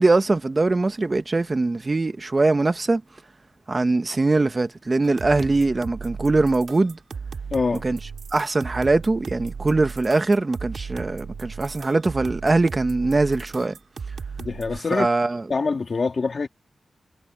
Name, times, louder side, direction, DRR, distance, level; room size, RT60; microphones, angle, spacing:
voice 1, 0.0-3.0 3.7-7.0 7.8-8.0 8.3-13.7 14.9-15.4, right 3 dB, 30° right, 1.3 m, -22 dB
sound 1, 5.0-14.8, right 5 dB, 75° right, 5.3 m, -36 dB
voice 2, 7.5-7.8 14.4-15.1 15.5-16.5, left 4 dB, 50° left, 2.7 m, -24 dB
wide cardioid pair, 100°, 0 cm